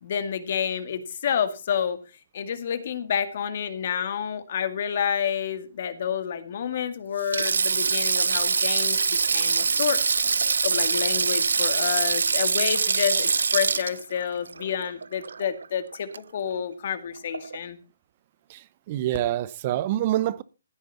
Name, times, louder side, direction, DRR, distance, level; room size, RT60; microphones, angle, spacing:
voice 1, 0.0-2.0 2.3-10.0 10.6-17.8, left 8 dB, 50° left, 2.1 m, -29 dB
Sink (filling or washing), 7.2-15.7 15.9-16.2 17.3-17.6, right 5 dB, 80° right, 0.6 m, -24 dB
voice 2, 18.5-20.4, right 13 dB, 35° right, 0.8 m, -26 dB
15.5 x 9.5 x 4.2 m
hypercardioid pair, 155°, 0 cm